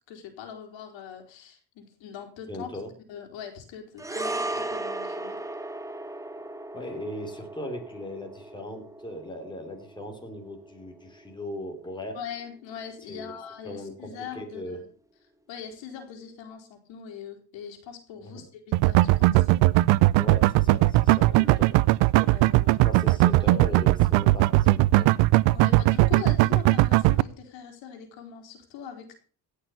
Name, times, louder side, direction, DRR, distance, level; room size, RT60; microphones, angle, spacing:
voice 1, 0.1-2.8 3.1-5.4 12.1-14.8 15.5-19.5 21.2-21.6 22.2-23.1 23.6-23.7 25.5-29.1, left 8 dB, 80° left, 4 dB, 4.1 m, -42 dB
voice 2, 2.5-2.9 6.7-12.2 13.1-13.4 13.6-14.8 18.2-18.4 20.2-21.7 22.6-25.2, left 1 dB, 10° left, 3 dB, 3.1 m, -38 dB
sound 1, 4.0-12.5 12.7-12.9, right 2 dB, 5° right, 1.1 m, -37 dB
sound 2, 18.7-27.2, right 19 dB, 80° right, 0.6 m, -19 dB
17.0 x 6.7 x 6.8 m, 0.42 s
cardioid pair, 115°, 45 cm